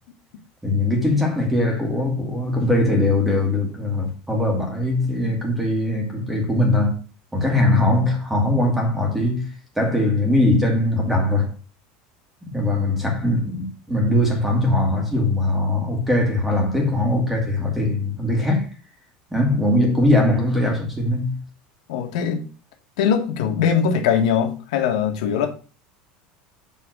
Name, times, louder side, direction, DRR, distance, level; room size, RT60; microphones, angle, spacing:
voice 1, 0.6-7.0 7.3-9.5 9.8-11.5 12.5-18.7 19.3-21.4, left 1 dB, 5° right, 1.8 m, -21 dB
voice 2, 21.9-22.4 23.0-25.5, left 7 dB, 90° left, 1.6 m, -21 dB
7.5 x 3.7 x 6.1 m
cardioid pair, 180°, 4 cm